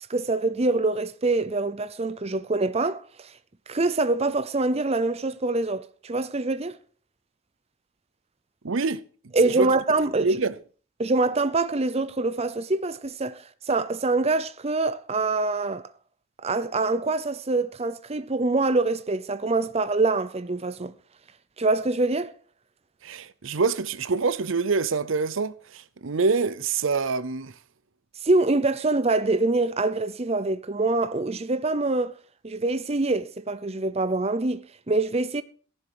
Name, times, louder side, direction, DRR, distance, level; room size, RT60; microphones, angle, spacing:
voice 1, 0.1-3.3 3.7-6.8 9.3-10.3 11.0-13.4 13.7-15.9 16.4-20.9 21.6-22.3 28.2-32.1 32.4-35.4, right 3 dB, 30° right, 0.6 m, -25 dB
voice 2, 8.6-9.0 9.4-9.7 10.2-10.5 23.0-27.5, right 4 dB, 70° right, 0.7 m, -25 dB
14.5 x 11.0 x 4.8 m
head